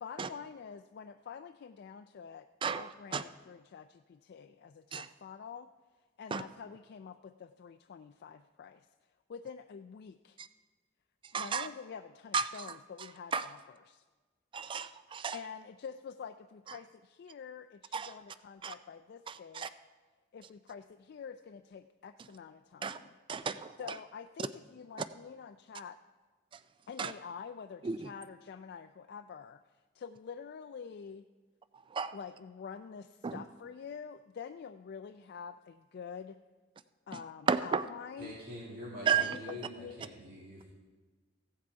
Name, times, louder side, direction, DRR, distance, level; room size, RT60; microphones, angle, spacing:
voice 1, 0.0-5.7 6.2-8.9 9.3-10.4 11.3-13.6 13.9-14.0 15.3-19.7 20.3-23.1 23.8-26.0 26.9-31.3 32.1-36.4 37.1-38.4 39.2-40.0 40.4-40.5, left 6 dB, 55° left, 8 dB, 0.3 m, -47 dB
voice 2, 2.6-3.2 4.9-5.1 6.3-6.4 10.4-10.5 11.3-11.7 12.3-12.8 13.3-13.5 14.5-15.4 17.9-18.1 18.6-18.7 19.3-19.7 22.8-23.0 23.3-23.8 26.5-26.6 27.0-27.1 27.8-28.1 31.7-32.2 33.2-33.4 37.5-37.8 39.1-39.4, right 6 dB, 25° right, 12 dB, 0.3 m, -33 dB
voice 3, 38.2-40.6, left 1 dB, 50° right, -6 dB, 2.1 m, -45 dB
15.5 x 7.5 x 4.7 m, 1.3 s
head